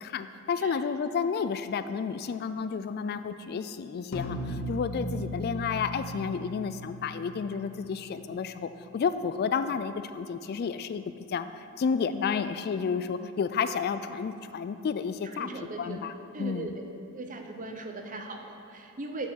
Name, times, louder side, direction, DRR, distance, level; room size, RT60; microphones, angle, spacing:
voice 1, 0.0-11.0 11.3-11.5 11.8-15.5 15.8-16.7, left 6 dB, 50° left, 11 dB, 0.3 m, -31 dB
sound 1, 4.1-8.7, equal, 80° left, 0.9 m, -37 dB
voice 2, 15.4-16.0 16.3-16.7 17.1-19.3, right 2 dB, 40° right, 4 dB, 0.7 m, -38 dB
7.0 x 6.8 x 6.3 m, 2.6 s
head